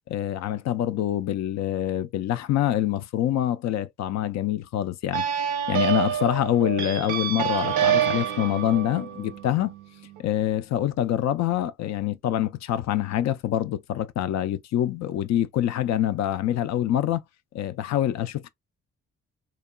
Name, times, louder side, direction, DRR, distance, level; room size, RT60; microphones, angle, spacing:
voice 1, 0.1-5.2 5.7-9.7 10.2-17.2 17.5-18.5, left 12 dB, 60° left, 0.4 m, -25 dB
sound 1, 5.1-10.2, right 9 dB, 85° right, 0.8 m, -27 dB
2.9 x 2.3 x 2.2 m
cardioid pair, 90°, 30 cm